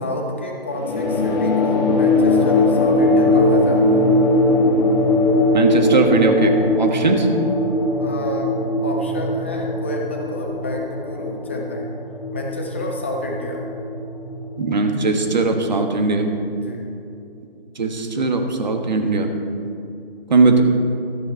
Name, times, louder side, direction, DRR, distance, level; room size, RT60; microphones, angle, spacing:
voice 1, 0.0-4.1 6.9-7.1 8.0-8.5 8.8-11.9 12.3-13.7 16.6-16.8, left 1 dB, 10° left, 1 dB, 0.6 m, -29 dB
sound 1, 0.7-15.6, left 2 dB, 45° left, 2.0 m, -20 dB
voice 2, 5.5-7.3 14.6-16.3 17.7-19.3 20.3-20.6, right 3 dB, 45° right, 5 dB, 1.4 m, -19 dB
13.5 x 9.2 x 4.5 m, 2.6 s
figure-of-eight pair, 155°, 30 cm